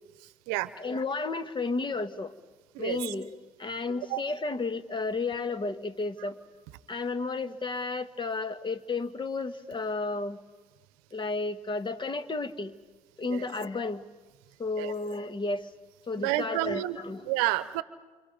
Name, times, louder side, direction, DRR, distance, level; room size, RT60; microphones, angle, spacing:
voice 1, 0.8-2.3 2.8-6.4 6.9-10.4 11.1-12.8 13.2-14.0 14.6-15.7 16.1-17.3, left 3 dB, 30° left, 11 dB, 1.7 m, -32 dB
voice 2, 2.7-3.1 4.1-4.2 13.3-13.5 14.8-14.9 16.2-17.0 17.2-17.8, right 17 dB, 75° right, 16 dB, 0.9 m, -29 dB
29.0 x 27.5 x 5.3 m, 1.3 s
hypercardioid pair, 55°, 16 cm